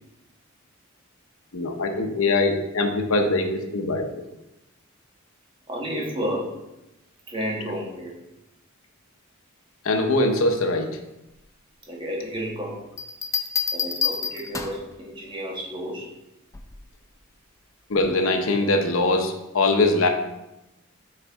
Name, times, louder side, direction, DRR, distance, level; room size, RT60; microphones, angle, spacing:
voice 1, 1.5-4.1 9.8-10.9 17.9-20.1, left 2 dB, 70° left, 5 dB, 0.8 m, -22 dB
voice 2, 5.7-6.6 7.3-8.2 11.9-12.8 13.7-16.1, equal, 25° right, -2 dB, 1.3 m, -31 dB
Bell, 13.0-14.9 16.5-16.9, left 6 dB, 15° left, 0.4 m, -28 dB
6.6 x 4.2 x 3.5 m, 0.93 s
head